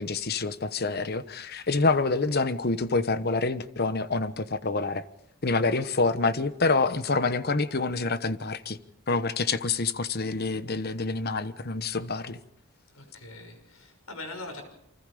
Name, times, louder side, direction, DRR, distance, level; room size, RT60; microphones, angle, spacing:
voice 1, 0.0-5.0 5.4-8.8 9.1-12.4, left 3 dB, 45° left, 1.1 m, -27 dB
voice 2, 1.4-1.8 12.9-14.6, left 2 dB, 75° left, 6.4 m, -42 dB
29.0 x 25.0 x 5.1 m
head